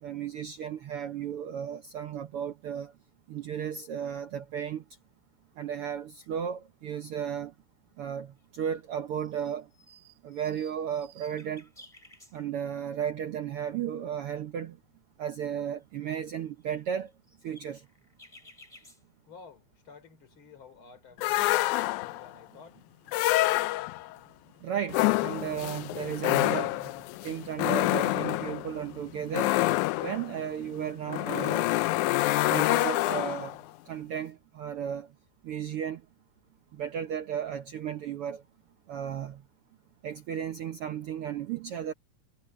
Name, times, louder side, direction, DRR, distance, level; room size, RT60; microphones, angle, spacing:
voice 1, 0.0-2.9 3.3-4.8 5.6-7.5 8.0-9.7 10.2-11.7 12.3-14.8 15.2-17.1 17.4-17.9 24.6-26.9 27.2-29.6 30.0-31.7 32.5-33.6 33.9-35.1 35.4-36.0 36.7-38.4 38.9-39.4 40.0-41.9, right 9 dB, 80° right, 1.2 m, -34 dB
sound 1, 5.2-5.3 5.6-6.2 6.5-7.8 8.4-8.8 9.1-12.8 13.2-13.3 13.5-14.1 14.4-19.8 20.1-22.4, equal, 10° left, 7.7 m, -58 dB
voice 2, 18.8-24.0, left 5 dB, 40° left, 4.2 m, -54 dB
sound 2, 21.2-22.3 23.1-24.1 24.9-33.6, left 18 dB, 80° left, 1.9 m, -27 dB
omnidirectional pair, 3.7 m